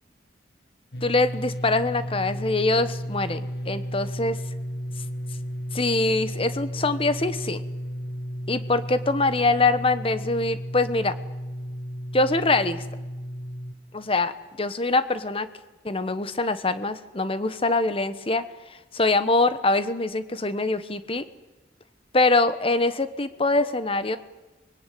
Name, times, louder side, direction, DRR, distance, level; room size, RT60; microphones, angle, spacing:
sound 1, 0.9-13.7, equal, 60° left, 1.6 m, -33 dB
voice 1, 1.0-4.4 5.7-7.6 8.5-11.1 12.1-12.8 13.9-15.5 15.8-18.4 18.9-21.2 22.1-24.2, left 2 dB, 30° left, 12 dB, 1.2 m, -24 dB
25.5 x 22.0 x 9.4 m, 1.1 s
head